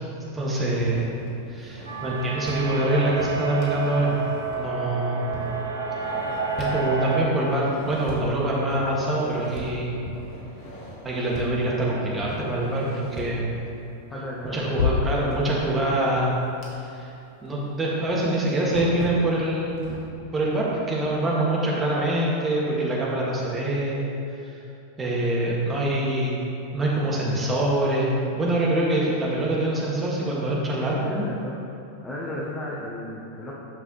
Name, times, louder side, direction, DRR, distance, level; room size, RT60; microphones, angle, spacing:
voice 1, 0.3-1.1 1.5-4.1 4.5-5.2 6.6-9.9 11.0-13.5 14.5-16.3 16.8-17.1 17.4-19.8 20.3-24.0 24.4-24.5 25.0-26.4 26.7-31.2, right 1 dB, 15° right, -5 dB, 1.7 m, -25 dB
sound 1, 0.8-2.5 3.2-4.8 5.3-6.7 7.1-8.2 8.7-9.6 10.0-11.9 12.2-13.4 15.3-15.4 16.0-17.1 17.5-17.6 18.0-20.1, left 1 dB, 40° left, 1.7 m, -40 dB
sound 2, 1.9-7.3, right 4 dB, 80° right, 0.8 m, -29 dB
voice 2, 14.1-14.8 30.8-31.6 32.0-33.5, left 1 dB, 10° left, -5 dB, 0.9 m, -35 dB
sound 3, 14.8-16.7, left 6 dB, 70° left, 0.3 m, -28 dB
9.1 x 6.0 x 3.0 m, 2.8 s
figure-of-eight pair, 90°, 0 cm